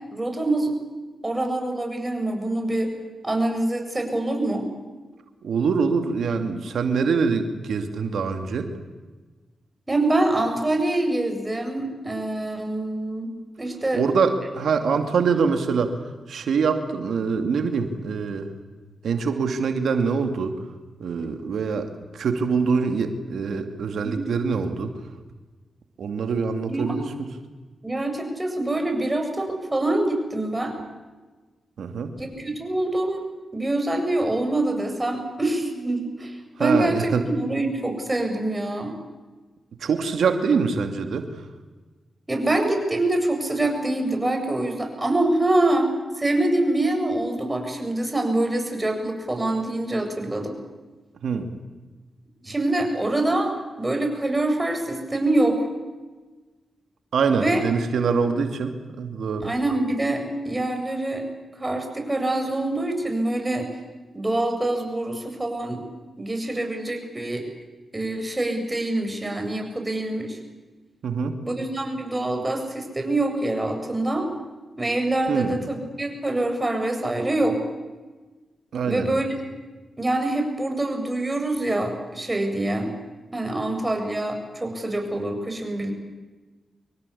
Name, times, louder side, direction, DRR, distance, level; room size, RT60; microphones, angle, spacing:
voice 1, 0.1-0.7 1.2-2.9 3.2-4.7 9.9-14.0 24.0-24.3 26.7-26.9 27.8-30.7 32.2-33.2 33.5-39.0 42.3-45.9 46.2-50.6 52.4-55.7 57.3-57.6 59.4-61.3 61.6-63.7 64.1-65.9 66.2-67.4 67.9-70.4 71.4-74.3 74.8-77.6 78.8-79.4 80.0-82.9 83.3-85.9, right 2 dB, 20° right, 4 dB, 7.9 m, -25 dB
voice 2, 5.4-8.7 13.9-16.0 16.3-18.5 19.0-20.5 21.0-21.9 22.1-24.9 26.0-27.3 31.8-32.1 36.6-37.2 39.8-41.3 51.2-51.5 57.1-59.5 71.0-71.4 75.3-75.6 78.7-79.1, right 5 dB, 75° right, 6 dB, 2.6 m, -24 dB
26.0 x 23.0 x 8.6 m, 1.3 s
supercardioid pair, 45°, 0 cm